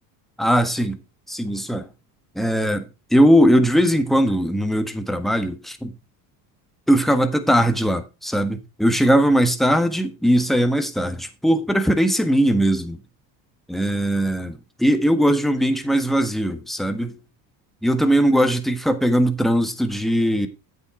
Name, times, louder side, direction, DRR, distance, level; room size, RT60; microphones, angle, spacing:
voice 1, 0.4-1.0 1.3-1.9 2.3-5.9 6.9-13.0 13.7-17.2 17.8-20.5, equal, ahead, 1.4 m, -20 dB
8.6 x 7.8 x 4.4 m
supercardioid pair, 90°, 49 cm